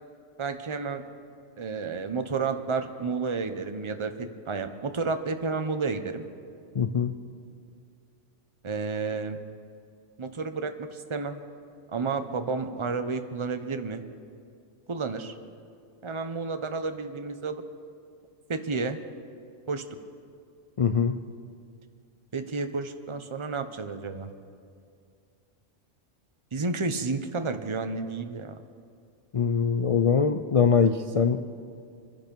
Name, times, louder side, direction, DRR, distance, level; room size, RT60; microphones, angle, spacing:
voice 1, 0.4-1.0 1.6-6.2 8.6-9.4 10.2-11.4 11.9-14.0 14.9-15.3 16.0-17.6 18.5-19.0 19.7-19.8 22.3-24.3 26.5-28.6, right 4 dB, 30° right, 8 dB, 0.8 m, -31 dB
voice 2, 6.8-7.1 20.8-21.2 29.3-31.5, left 6 dB, 55° left, 8 dB, 0.4 m, -23 dB
26.0 x 10.5 x 5.4 m, 2.4 s
omnidirectional pair, 1.3 m